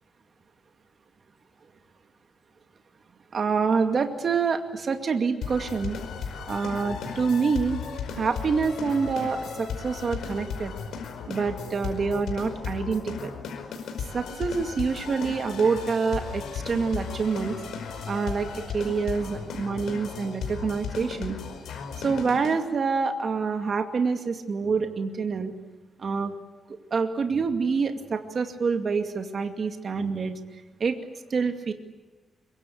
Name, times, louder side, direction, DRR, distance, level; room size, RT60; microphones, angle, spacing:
voice 1, 3.3-6.0 6.5-7.8 8.2-10.7 11.3-13.3 14.1-17.5 18.1-21.4 22.0-25.5 26.0-26.3 26.9-30.3 30.8-31.0 31.3-31.7, right 5 dB, 45° right, 5 dB, 2.3 m, -26 dB
sound 1, 5.4-22.6, left 6 dB, 90° left, 5.1 m, -35 dB
25.0 x 23.5 x 8.4 m, 1.2 s
cardioid pair, 125°, 0 cm